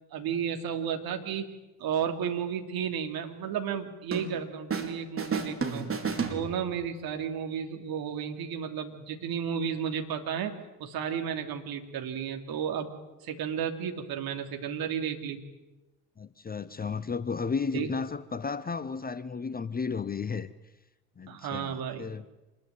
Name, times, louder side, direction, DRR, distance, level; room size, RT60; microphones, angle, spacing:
voice 1, 0.1-1.5 1.8-5.9 6.3-10.5 10.8-12.9 13.2-15.4 17.7-17.9 21.3-22.1, right 8 dB, 50° right, 3.1 m, -33 dB
sound 1, 4.1-4.9 5.2-6.9, right 5 dB, 30° right, 4.3 m, -32 dB
voice 2, 16.2-20.5 21.2-22.2, left 5 dB, 20° left, 0.9 m, -33 dB
26.0 x 21.0 x 9.3 m
figure-of-eight pair, 55°, 46 cm